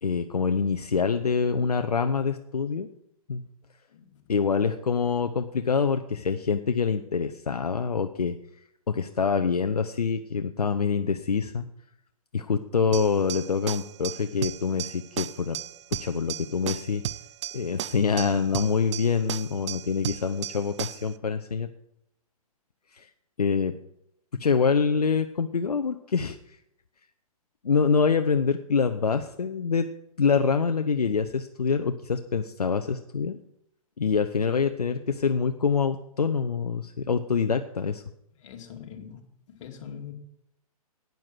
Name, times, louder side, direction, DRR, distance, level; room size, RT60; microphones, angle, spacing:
voice 1, 0.0-2.9 3.3-3.4 4.3-8.4 8.9-11.7 12.3-15.6 15.9-17.0 17.5-21.7 22.9-23.1 23.4-23.7 24.4-26.6 27.6-29.9 30.2-33.4 34.0-38.0, left 5 dB, 85° left, 8 dB, 0.8 m, -25 dB
voice 2, 3.9-4.2 38.4-39.2 39.5-40.1, left 8 dB, 55° left, 3 dB, 2.4 m, -42 dB
sound 1, 12.9-21.1, right 11 dB, 50° right, 0.5 m, -35 dB
12.0 x 9.4 x 6.1 m, 0.79 s
hypercardioid pair, 125°, 19 cm